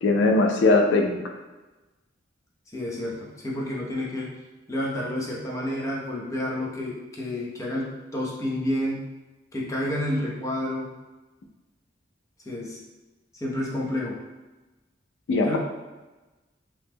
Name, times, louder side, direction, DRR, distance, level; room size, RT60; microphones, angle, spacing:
voice 1, 0.0-1.2 15.3-15.6, left 3 dB, 85° left, 3 dB, 0.4 m, -20 dB
voice 2, 2.7-4.4 4.7-9.1 9.5-10.9 12.4-12.8 13.3-14.2 15.4-15.6, left 1 dB, 20° left, -4 dB, 0.6 m, -30 dB
2.9 x 2.0 x 3.4 m, 1.2 s
head